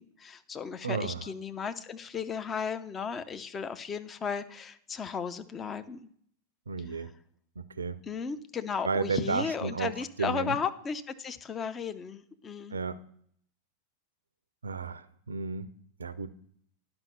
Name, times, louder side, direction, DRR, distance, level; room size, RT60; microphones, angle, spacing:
voice 1, 0.0-6.1 8.1-12.8, left 6 dB, 20° left, 10 dB, 0.6 m, -35 dB
voice 2, 0.8-1.3 6.7-7.1 7.6-8.0 8.8-10.6 12.7-13.0 14.6-16.3, right 4 dB, 75° right, 17 dB, 0.5 m, -33 dB
10.5 x 5.7 x 6.7 m, 0.63 s
figure-of-eight pair, 90°, 0 cm